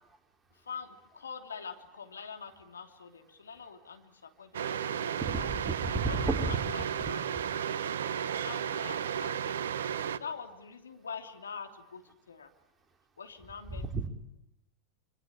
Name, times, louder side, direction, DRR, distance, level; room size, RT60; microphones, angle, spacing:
voice 1, 0.5-5.5 5.9-7.3 8.2-9.7 10.1-12.5 13.2-13.9, left 6 dB, 70° left, 5 dB, 3.1 m, -45 dB
sound 1, 4.5-10.2, right 8 dB, 60° right, 1.1 m, -33 dB
voice 2, 5.2-6.5 7.0-7.1 13.9-14.1, right 3 dB, 15° right, 4 dB, 3.5 m, -32 dB
26.0 x 26.0 x 8.8 m, 0.88 s
figure-of-eight pair, 90°, 0 cm